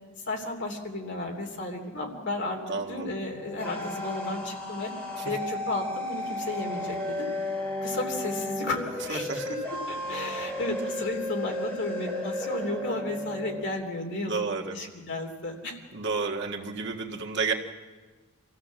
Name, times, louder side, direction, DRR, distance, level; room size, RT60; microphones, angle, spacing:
voice 1, 0.3-4.9 5.2-7.3 7.8-14.4 14.7-15.8, left 2 dB, 55° left, 2 dB, 3.1 m, -33 dB
voice 2, 2.7-3.1 9.1-9.5 14.3-14.7 15.9-17.5, right 4 dB, 55° right, 1 dB, 1.8 m, -31 dB
sound 1, 3.2-13.6, left 1 dB, 5° left, 7.0 m, -34 dB
26.5 x 15.5 x 7.5 m, 1.4 s
head